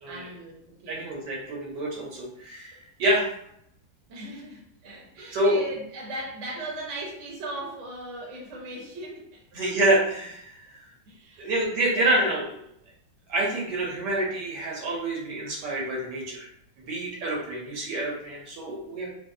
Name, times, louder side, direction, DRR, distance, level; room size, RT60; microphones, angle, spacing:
voice 1, 0.1-1.1 4.1-9.4 11.1-11.5 11.9-12.1, right 2 dB, 50° right, -2 dB, 1.0 m, -38 dB
voice 2, 0.9-3.3 5.3-5.6 9.5-10.8 11.4-12.5 13.3-16.5 16.9-19.1, right 1 dB, 70° right, -2 dB, 1.4 m, -27 dB
4.0 x 2.0 x 2.6 m, 0.71 s
omnidirectional pair, 2.0 m